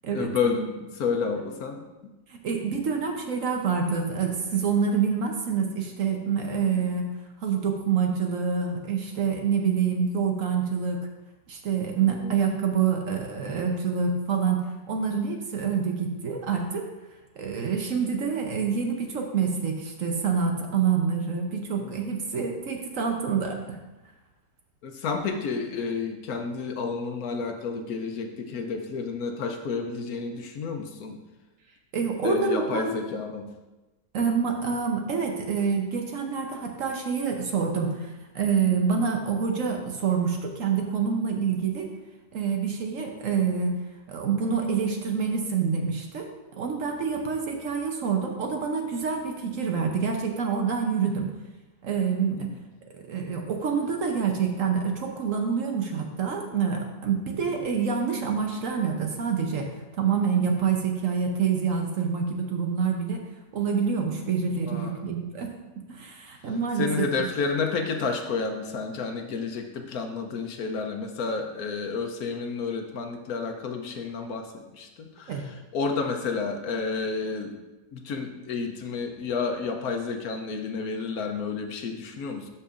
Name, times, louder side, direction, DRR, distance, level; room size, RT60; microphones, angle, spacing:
voice 1, 0.1-1.8 6.7-6.8 12.1-12.3 21.8-22.0 24.8-31.2 32.2-33.5 52.3-52.5 57.5-57.6 64.6-65.0 66.8-77.6 77.9-82.5, left 4 dB, 65° left, 4 dB, 1.1 m, -30 dB
voice 2, 2.3-7.0 7.4-11.0 11.5-14.6 14.9-16.8 17.4-23.8 31.9-32.9 34.1-41.9 42.3-43.7 44.1-46.3 46.6-51.3 51.8-52.5 53.1-59.7 60.0-63.2 63.5-65.5 65.8-67.0 75.3-75.4, right 6 dB, 60° right, 2 dB, 1.0 m, -27 dB
12.0 x 5.6 x 2.5 m, 1.1 s
omnidirectional pair, 1.8 m